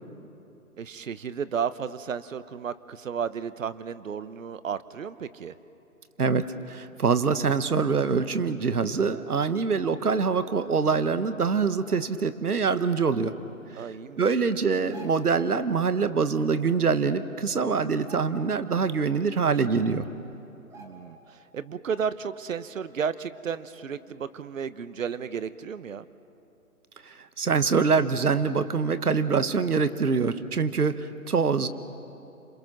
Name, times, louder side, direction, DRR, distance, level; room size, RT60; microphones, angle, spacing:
voice 1, 0.8-5.5 9.9-10.2 13.8-14.2 20.8-26.1, right 7 dB, 60° right, 14 dB, 1.1 m, -33 dB
voice 2, 6.2-13.3 14.2-20.0 27.0-31.7, right 5 dB, 80° right, 12 dB, 1.4 m, -24 dB
sound 1, 14.9-15.5 16.9-17.0 17.3-17.6 17.9-18.8 19.2-19.3 20.0-20.1 20.7-21.3 21.7-21.8, right 2 dB, 5° right, 1.5 m, -49 dB
28.0 x 27.5 x 6.1 m, 2.9 s
figure-of-eight pair, 150°, 44 cm